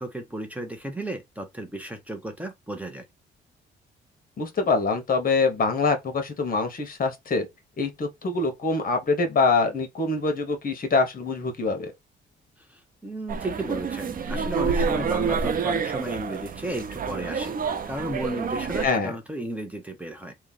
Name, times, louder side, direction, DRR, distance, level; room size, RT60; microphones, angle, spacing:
voice 1, 0.0-3.0 13.0-17.5 17.9-20.3, right 1 dB, 5° right, 1.0 m, -34 dB
voice 2, 4.4-7.5 7.8-11.9 18.8-19.1, left 3 dB, 45° left, 1.3 m, -24 dB
sound 1, 13.3-18.9, right 5 dB, 45° right, 0.7 m, -28 dB
3.1 x 2.5 x 3.8 m
cardioid pair, 90°, 20 cm